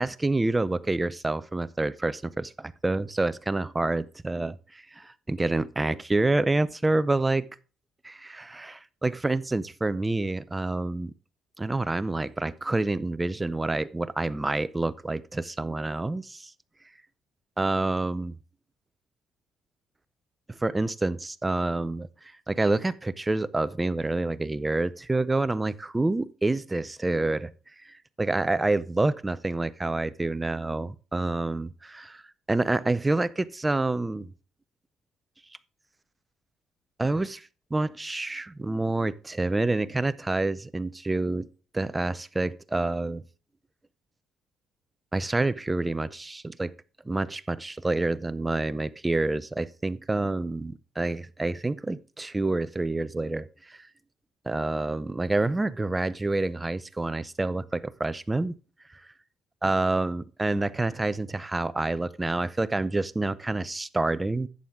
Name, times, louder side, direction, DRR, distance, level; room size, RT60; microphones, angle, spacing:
voice 1, 0.0-7.5 8.0-11.1 11.6-16.5 17.6-18.4 20.5-22.1 22.5-27.5 27.8-32.2 32.5-34.3 37.0-41.5 41.7-43.2 45.1-46.7 47.1-53.9 54.5-58.5 59.6-64.5, right 2 dB, 15° right, 0.5 m, -28 dB
11.5 x 7.7 x 3.6 m
cardioid pair, 110°, 0 cm